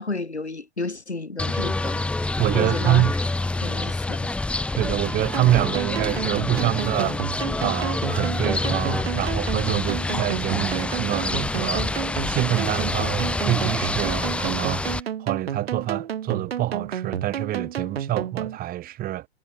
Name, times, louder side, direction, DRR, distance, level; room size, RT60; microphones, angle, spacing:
voice 1, 0.0-3.1 3.6-4.3, left 3 dB, 85° left, 5.7 m, -32 dB
sound 1, 1.4-15.0, left 2 dB, 5° left, 0.7 m, -27 dB
voice 2, 2.4-3.1 4.7-7.2 7.6-11.9 12.3-19.3, right 14 dB, 25° right, 3.2 m, -26 dB
sound 2, 5.3-18.6, right 9 dB, 65° right, 1.7 m, -31 dB
figure-of-eight pair, 105°, 33 cm